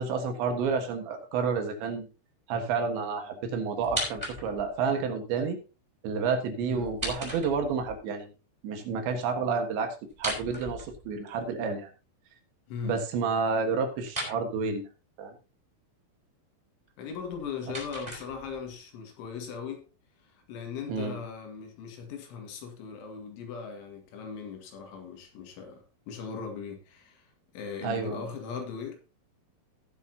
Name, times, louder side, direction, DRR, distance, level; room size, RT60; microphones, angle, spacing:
voice 1, 0.0-2.1 2.5-5.6 6.0-8.3 8.6-11.9 12.8-14.8 15.2-15.3 20.9-21.2 27.8-28.2, right 5 dB, 70° right, 3.6 m, -30 dB
sound 1, 3.8-4.8 6.7-8.0 10.1-11.4 14.0-14.4 17.1-18.7, equal, 10° right, 4.2 m, -37 dB
voice 2, 12.7-13.0 17.0-19.8 20.2-29.0, left 6 dB, 70° left, 4.2 m, -39 dB
18.5 x 7.2 x 2.8 m
omnidirectional pair, 5.7 m